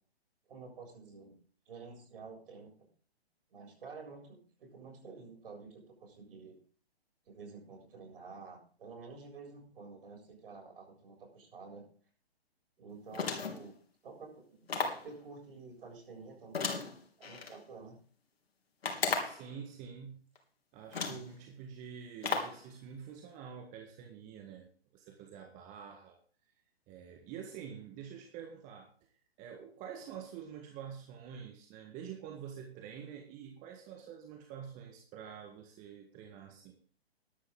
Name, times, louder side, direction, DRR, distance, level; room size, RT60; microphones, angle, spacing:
voice 1, 0.5-1.3 1.7-2.9 3.5-6.6 7.3-11.9 12.8-13.8 14.0-14.7 15.0-16.8 17.2-18.0, right 4 dB, 60° right, 1 dB, 7.4 m, -50 dB
sound 1, 13.1-13.7 14.7-15.1 16.5-17.5 18.8-19.5 20.4-20.5 20.9-21.3 22.2-22.6, left 4 dB, 70° left, 3.4 m, -35 dB
voice 2, 19.2-20.2 20.7-26.2 26.9-28.9 29.4-36.7, right 8 dB, 25° right, 3 dB, 1.7 m, -47 dB
13.5 x 12.0 x 3.9 m, 0.43 s
hypercardioid pair, 135°, 32 cm